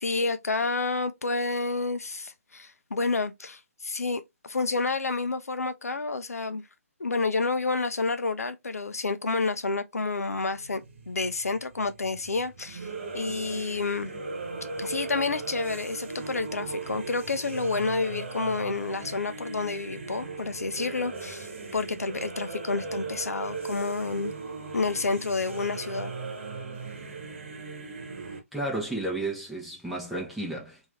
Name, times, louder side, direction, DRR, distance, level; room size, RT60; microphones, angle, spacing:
voice 1, 0.0-6.6 7.0-12.9 13.1-14.1 14.8-24.3 24.7-26.1, left 3 dB, 75° left, 0.5 m, -29 dB
sound 1, 10.3-28.4, right 4 dB, 50° right, 1.2 m, -38 dB
voice 2, 28.5-30.9, right 2 dB, ahead, 0.9 m, -32 dB
3.0 x 2.7 x 3.2 m
figure-of-eight pair, 140°, 8 cm